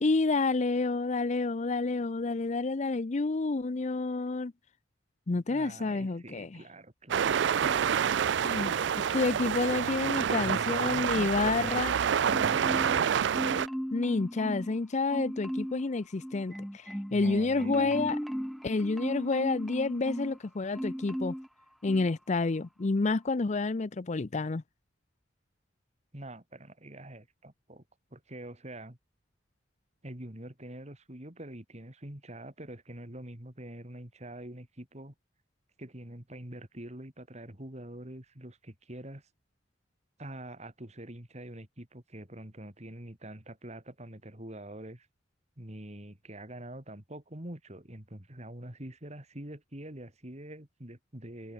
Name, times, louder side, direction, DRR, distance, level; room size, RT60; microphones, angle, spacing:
voice 1, 0.0-4.5 5.3-6.6 8.4-8.8 9.1-11.9 13.9-18.2 18.6-21.3 21.8-24.6, left 3 dB, 40° left, 0.5 m, -29 dB
voice 2, 5.5-8.2 8.6-9.4 10.4-11.9 12.2-13.0 17.1-18.1 26.1-27.8 28.1-29.0 30.0-35.1 35.8-39.2 40.2-45.1 45.6-51.5, right 1 dB, 35° right, 3.3 m, -45 dB
sound 1, 7.1-13.7, right 8 dB, 65° right, 0.4 m, -28 dB
Marimba xylophone, 12.3-13.1 13.3-14.8 15.1-15.8 16.2-20.4 20.7-21.5 21.9-22.1, equal, ahead, 1.6 m, -36 dB
head